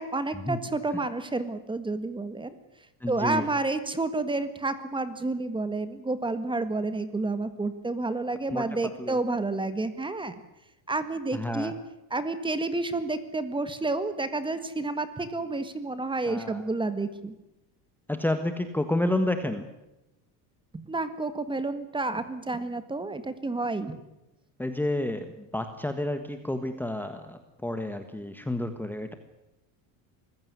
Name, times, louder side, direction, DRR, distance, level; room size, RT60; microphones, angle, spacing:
voice 1, 0.0-2.5 3.1-10.4 10.9-11.8 12.1-17.3 20.7-24.0, right 3 dB, 10° right, 11 dB, 1.7 m, -30 dB
voice 2, 3.0-3.5 8.5-9.2 11.3-11.7 16.3-16.6 18.1-19.7 24.6-29.1, left 1 dB, 5° left, 8 dB, 1.4 m, -30 dB
24.5 x 15.5 x 9.6 m, 0.94 s
cardioid pair, 140°, 41 cm